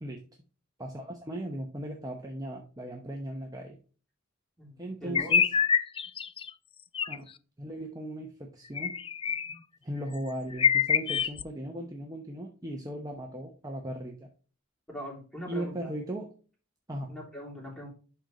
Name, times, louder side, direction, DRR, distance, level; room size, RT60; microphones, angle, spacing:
voice 1, 0.8-3.8 4.8-5.5 7.1-7.3 7.6-8.9 9.8-14.3 15.5-16.3 16.9-17.1, right 1 dB, 20° right, 1 dB, 0.9 m, -37 dB
voice 2, 5.0-5.3 14.9-15.9 17.1-17.9, equal, ahead, -3 dB, 3.1 m, -41 dB
sound 1, 5.1-6.5 6.9-7.2 8.8-9.6 10.1-10.2 10.5-11.4, left 7 dB, 25° left, 0.3 m, -26 dB
11.5 x 4.0 x 3.0 m, 0.36 s
head